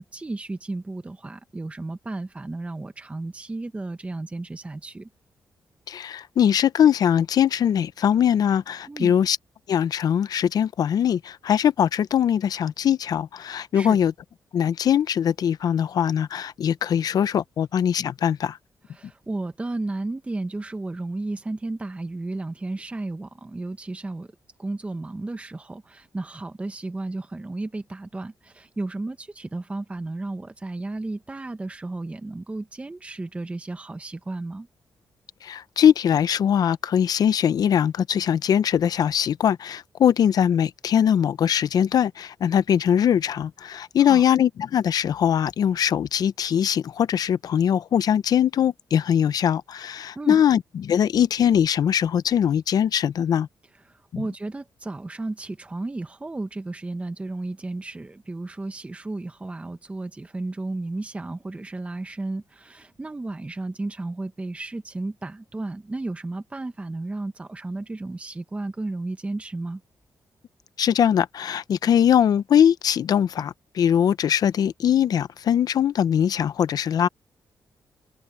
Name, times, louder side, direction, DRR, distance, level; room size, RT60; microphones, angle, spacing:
voice 1, 0.0-5.1 8.9-9.1 13.7-14.0 18.9-24.3 24.6-34.7 44.0-44.2 50.1-50.4 53.7-69.8, right 2 dB, 20° right, 0.9 m, -33 dB
voice 2, 5.9-9.4 9.7-14.1 14.5-18.6 35.4-53.5 54.1-54.2 70.8-77.1, left 9 dB, 65° left, 0.7 m, -21 dB
cardioid pair, 100°, 7 cm